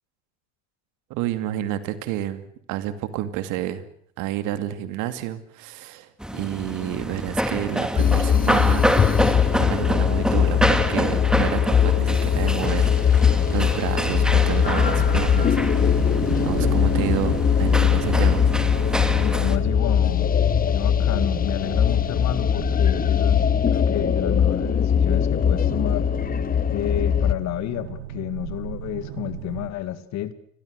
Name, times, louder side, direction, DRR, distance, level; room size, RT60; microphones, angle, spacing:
voice 1, 1.1-2.4 2.7-3.8 4.2-8.9 9.5-13.2 13.5-16.0 16.4-18.4 18.9-19.1, right 13 dB, 65° right, 11 dB, 2.5 m, -30 dB
sound 1, 6.2-19.6, equal, ahead, 2.3 m, -27 dB
sound 2, 8.0-27.3, left 8 dB, 25° left, 1.2 m, -21 dB
sound 3, 14.0-29.7, right 12 dB, 80° right, 2.3 m, -35 dB
voice 2, 19.1-20.3 20.7-26.1 26.7-30.3, left 12 dB, 55° left, 13 dB, 2.2 m, -30 dB
29.0 x 22.0 x 6.6 m, 0.65 s
hypercardioid pair, 80°, 33 cm